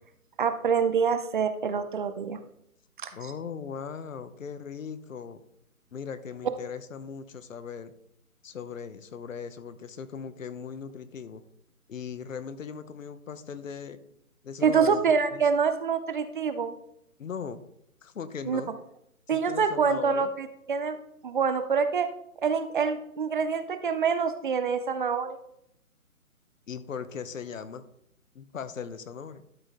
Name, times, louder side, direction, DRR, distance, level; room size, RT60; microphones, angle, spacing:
voice 1, 0.4-2.4 3.0-3.1 14.6-16.7 18.5-18.6 19.3-21.0 21.2-22.1 22.4-25.4, right 6 dB, 35° right, 10 dB, 0.6 m, -26 dB
voice 2, 3.1-5.4 5.9-7.9 8.4-11.4 11.9-14.0 14.4-15.0 15.3-15.4 17.2-17.7 18.0-18.8 19.3-20.3 26.7-27.8 28.3-29.4, left 6 dB, 60° left, 13 dB, 1.0 m, -38 dB
12.0 x 5.2 x 3.7 m, 0.75 s
figure-of-eight pair, 145°, 44 cm